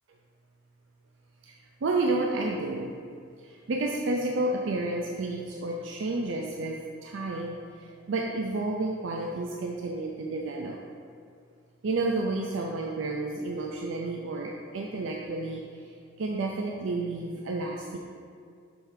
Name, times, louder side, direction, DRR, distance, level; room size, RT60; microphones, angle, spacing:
voice 1, 1.8-2.9 3.4-10.8 11.8-15.6 16.2-18.0, right 2 dB, 65° right, 0 dB, 0.4 m, -31 dB
6.2 x 3.3 x 4.8 m, 2.2 s
head